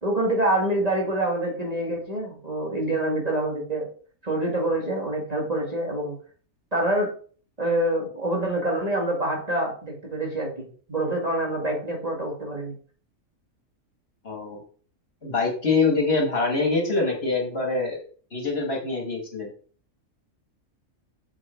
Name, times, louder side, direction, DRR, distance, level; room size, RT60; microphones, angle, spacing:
voice 1, 0.0-3.9 4.2-6.2 6.7-7.1 7.6-12.8, right 1 dB, 30° right, -1 dB, 2.2 m, -26 dB
voice 2, 14.2-14.6 15.2-18.0 18.3-19.5, left 3 dB, 50° left, 0 dB, 2.5 m, -24 dB
7.7 x 6.3 x 4.5 m, 0.43 s
omnidirectional pair, 1.4 m